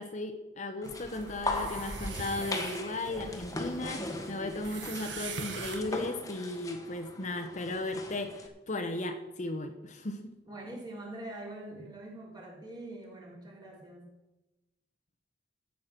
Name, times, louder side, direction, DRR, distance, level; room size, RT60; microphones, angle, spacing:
voice 1, 0.0-10.3, left 2 dB, 45° left, 6 dB, 1.0 m, -36 dB
sound 1, 0.8-8.5, left 2 dB, 20° left, 1.5 m, -39 dB
sound 2, 0.8-6.0, right 5 dB, 80° right, 1.6 m, -43 dB
voice 2, 10.5-14.1, right 1 dB, 25° right, -2 dB, 3.9 m, -44 dB
14.0 x 8.4 x 6.0 m, 1.0 s
head